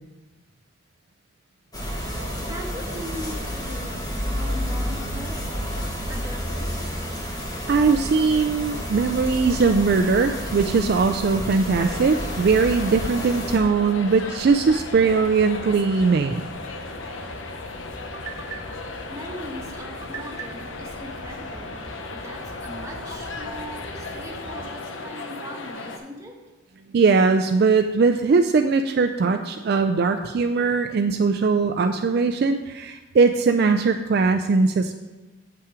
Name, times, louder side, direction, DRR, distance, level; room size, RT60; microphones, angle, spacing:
sound 1, 1.7-13.6, equal, 20° left, 1.1 m, -30 dB
voice 1, 2.4-6.9 18.0-26.4, right 1 dB, 15° right, -1 dB, 1.1 m, -39 dB
voice 2, 7.7-16.4 26.9-35.0, right 4 dB, 50° right, 6 dB, 0.3 m, -20 dB
sonic dirt I, 8.4-24.7, equal, 5° left, 2.0 m, -44 dB
sound 2, 11.7-26.0, left 3 dB, 75° left, 0.8 m, -36 dB
8.0 x 5.7 x 4.8 m, 1.2 s
head